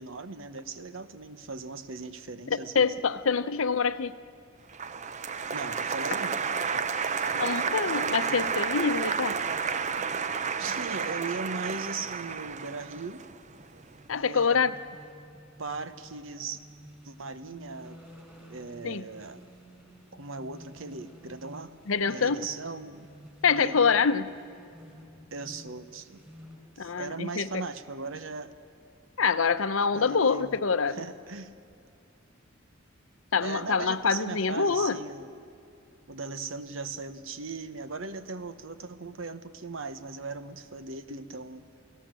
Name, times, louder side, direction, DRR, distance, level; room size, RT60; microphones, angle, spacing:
voice 1, 0.0-3.0 5.5-6.4 8.1-8.4 10.6-13.3 14.2-14.6 15.6-16.6 17.0-18.0 18.5-19.4 20.1-21.8 22.0-23.1 23.6-23.8 25.3-26.2 26.8-28.5 29.9-31.5 33.4-35.4 36.1-41.6, right 4 dB, 80° right, 12 dB, 1.1 m, -38 dB
voice 2, 2.5-4.1 7.3-9.4 14.1-14.7 18.8-19.1 21.9-22.4 23.4-24.3 26.8-27.5 29.2-31.0 33.3-35.0, left 5 dB, 90° left, 13 dB, 0.8 m, -25 dB
Applause, 4.7-13.8, right 6 dB, 35° right, 0.6 m, -31 dB
sound 1, 13.5-26.6, equal, 10° right, 5.2 m, -52 dB
29.0 x 17.0 x 7.6 m, 2.6 s
head